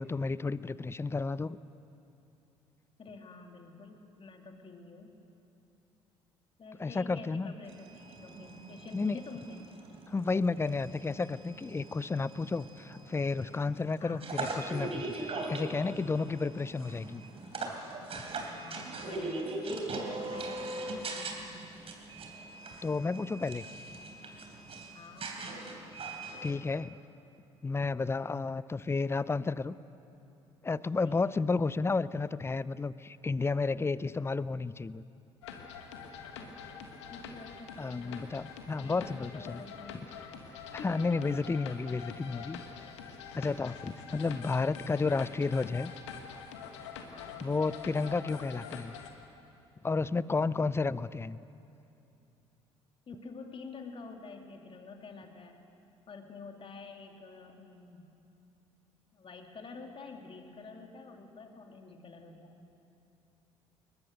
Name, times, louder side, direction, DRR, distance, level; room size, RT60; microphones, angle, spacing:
voice 1, 0.0-1.6 6.8-7.5 8.9-9.2 10.1-17.2 22.8-23.6 26.4-27.0 27.6-29.8 30.6-35.0 37.8-39.6 40.7-42.6 43.3-45.9 47.4-48.9 49.8-51.4, left 4 dB, 15° left, 18 dB, 0.6 m, -32 dB
voice 2, 3.0-5.1 6.6-9.6 14.0-14.3 18.6-19.6 20.1-21.4 24.9-25.9 31.0-31.6 36.4-38.2 38.7-40.1 40.8-41.1 44.3-44.6 47.1-47.5 53.1-55.6 56.1-58.1 59.1-62.6, left 4 dB, 35° left, 3 dB, 2.8 m, -49 dB
sound 1, 7.6-26.5, right 2 dB, 40° right, 3.4 m, -41 dB
sound 2, 35.4-49.1, left 6 dB, 75° left, 1.6 m, -45 dB
22.0 x 21.0 x 6.7 m, 2.7 s
figure-of-eight pair, 55°, 15 cm